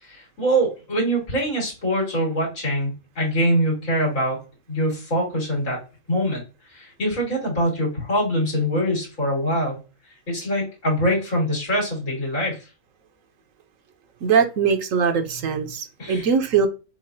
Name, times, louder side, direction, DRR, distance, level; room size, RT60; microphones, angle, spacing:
voice 1, 0.0-4.4 4.7-5.8 6.1-9.8 10.3-12.6 16.0-16.2, equal, 90° left, -4 dB, 3.2 m, -24 dB
voice 2, 14.2-16.7, right 6 dB, 75° right, 8 dB, 1.1 m, -21 dB
7.1 x 2.4 x 2.6 m, 0.31 s
omnidirectional pair, 1.4 m